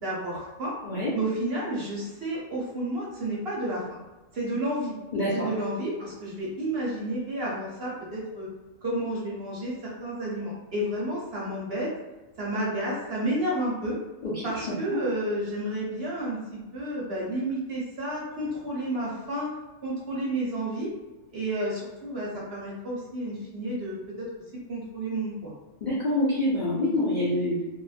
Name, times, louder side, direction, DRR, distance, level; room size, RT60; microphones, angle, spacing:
voice 1, 0.0-0.7 1.1-3.8 4.3-4.9 5.3-8.5 8.8-11.9 12.4-14.0 14.4-19.5 19.8-20.9 21.3-24.3 24.7-25.5, right 1 dB, 50° right, -6 dB, 0.9 m, -31 dB
voice 2, 5.1-5.5 14.2-14.4 25.8-27.6, left 1 dB, 55° left, -9 dB, 0.5 m, -26 dB
2.7 x 2.4 x 2.4 m, 1.1 s
omnidirectional pair, 1.5 m